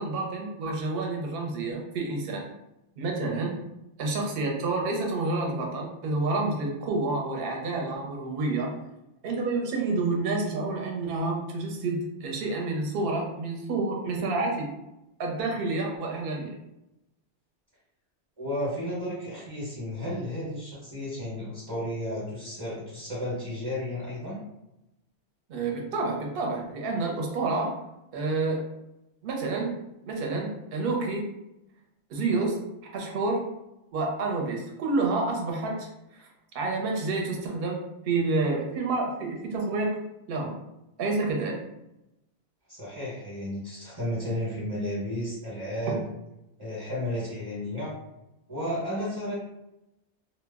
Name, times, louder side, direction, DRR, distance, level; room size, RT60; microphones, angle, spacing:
voice 1, 0.0-2.5 3.0-3.5 4.0-8.7 9.2-14.7 15.2-16.6 25.5-27.7 28.1-28.6 29.2-29.8 30.0-31.3 32.1-32.6 32.9-33.5 33.9-35.9 36.1-36.3 36.5-40.0 40.3-40.6 41.0-41.6, right 3 dB, 60° right, 0 dB, 0.8 m, -29 dB
voice 2, 18.4-24.4 42.7-46.0 46.6-47.9 48.5-49.3, equal, 20° right, -8 dB, 0.8 m, -33 dB
2.1 x 2.0 x 3.4 m, 0.89 s
omnidirectional pair, 1.2 m